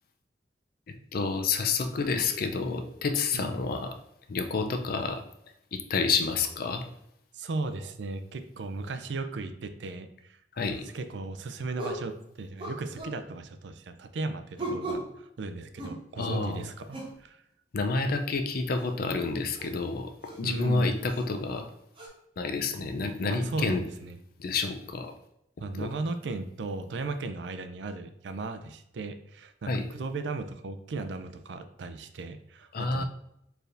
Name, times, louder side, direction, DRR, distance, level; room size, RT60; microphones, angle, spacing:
voice 1, 0.9-4.0 4.3-5.2 5.7-6.9 10.5-10.9 16.2-16.6 17.7-21.7 22.4-23.8 24.4-25.1 25.7-25.9 29.7-29.9 32.7-33.0, left 4 dB, 55° left, 6 dB, 0.5 m, -29 dB
voice 2, 7.3-10.4 10.9-17.4 20.4-21.0 23.3-24.2 25.6-33.0, right 3 dB, 85° right, 9 dB, 0.4 m, -36 dB
sound 1, 10.7-10.8 11.8-12.1 12.6-13.2 14.6-15.1 15.8-16.4 16.9-17.2 18.8-18.9 19.6-19.7 20.2-20.4 21.1-21.2 21.9-22.1, right 1 dB, 30° right, 1.1 m, -36 dB
4.5 x 3.4 x 2.5 m, 0.78 s
head